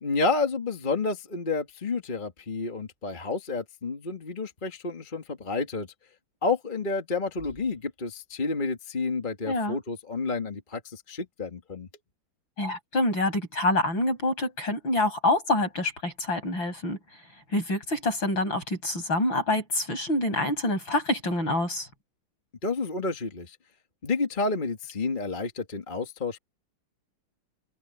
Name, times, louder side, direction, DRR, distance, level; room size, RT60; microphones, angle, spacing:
voice 1, 0.0-5.9 6.4-11.9 22.6-23.6 24.0-26.4, left 3 dB, 25° left, 1.9 m, -30 dB
voice 2, 9.5-9.8 12.6-17.0 17.5-21.9, left 1 dB, 65° left, 9.0 m, -26 dB
open air
omnidirectional pair, 2.3 m